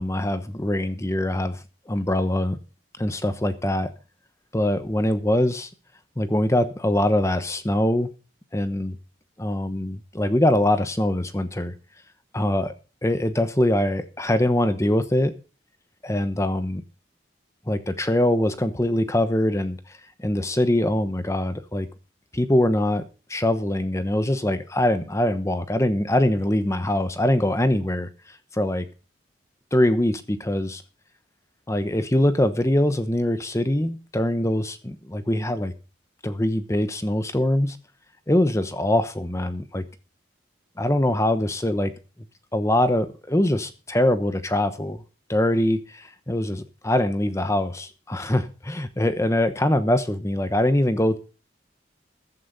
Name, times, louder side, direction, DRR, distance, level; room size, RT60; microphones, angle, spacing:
voice 1, 0.0-2.6 3.0-3.9 4.5-5.7 6.2-8.1 8.5-9.0 9.4-11.7 12.3-12.7 13.0-15.3 16.0-16.8 17.7-21.9 22.3-23.0 23.3-28.9 29.7-30.8 31.7-35.7 36.2-37.8 38.3-39.8 40.8-41.9 42.5-45.0 45.3-51.2, left 1 dB, 15° left, 10 dB, 1.0 m, -23 dB
15.0 x 11.5 x 4.1 m, 0.33 s
head